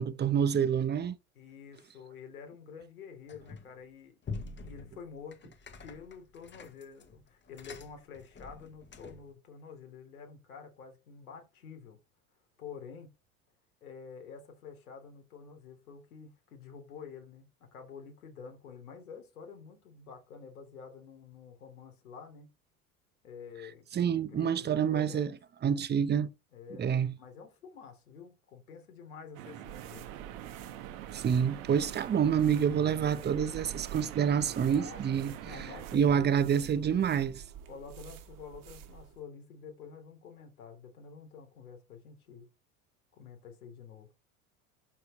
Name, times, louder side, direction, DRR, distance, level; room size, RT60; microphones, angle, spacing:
voice 1, 0.0-1.2 23.9-25.3 25.6-26.3 26.8-27.1 31.1-37.4, right 8 dB, 25° right, 0.9 m, -28 dB
voice 2, 1.4-5.5 5.8-12.0 12.6-13.1 13.8-22.5 23.2-25.4 26.5-26.9 27.2-30.1 34.7-35.0 35.4-36.3 37.7-42.5 43.2-44.1, left 6 dB, 85° left, 3.4 m, -49 dB
sound 1, 3.3-3.8 4.2-9.3, left 4 dB, 25° left, 1.5 m, -46 dB
sound 2, 29.3-36.0, right 12 dB, 70° right, 1.5 m, -45 dB
sound 3, 29.6-39.2, right 9 dB, 50° right, 2.0 m, -48 dB
12.0 x 4.5 x 3.2 m
hypercardioid pair, 85°, 42 cm